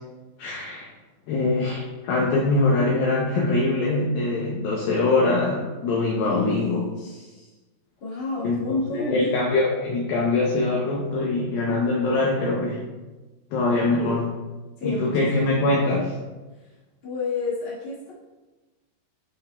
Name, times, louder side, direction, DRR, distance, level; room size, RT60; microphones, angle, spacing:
voice 1, 0.4-0.9 1.3-6.8 8.4-8.6 8.9-12.8 13.5-14.3 14.8-16.1, left 2 dB, 90° left, -3 dB, 2.0 m, -23 dB
voice 2, 6.2-7.5 8.0-9.3 14.0-14.2 14.8-16.0 17.0-18.1, left 2 dB, 50° left, -8 dB, 1.4 m, -31 dB
11.5 x 4.8 x 2.3 m, 1.2 s
omnidirectional pair, 5.2 m